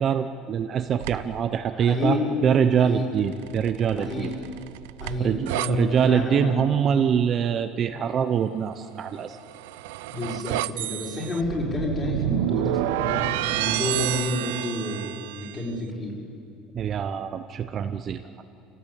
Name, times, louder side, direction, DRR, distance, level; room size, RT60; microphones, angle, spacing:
voice 1, 0.0-2.2 2.4-4.3 5.2-9.4 16.7-18.4, right 8 dB, 35° right, 8 dB, 0.8 m, -24 dB
sound 1, 1.0-1.4 3.3-5.7 9.2-15.6, right 17 dB, 85° right, 0.5 m, -30 dB
voice 2, 1.7-2.3 2.8-3.1 3.9-4.3 5.0-6.7 10.1-16.2, left 2 dB, 25° left, -3 dB, 5.6 m, -29 dB
26.0 x 17.5 x 8.5 m, 2.6 s
cardioid pair, 135°, 0 cm